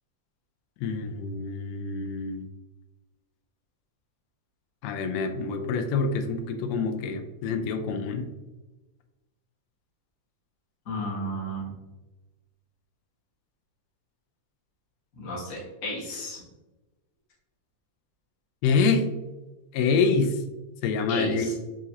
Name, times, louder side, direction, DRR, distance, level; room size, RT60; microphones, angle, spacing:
voice 1, 0.8-2.5 4.8-8.3 18.6-19.1 19.7-20.3 20.8-21.5, left 4 dB, 80° left, 6 dB, 1.7 m, -26 dB
voice 2, 10.8-11.6 15.1-16.4 21.1-21.5, equal, 35° left, -5 dB, 1.4 m, -33 dB
6.1 x 3.1 x 2.7 m, 1.1 s
omnidirectional pair, 3.3 m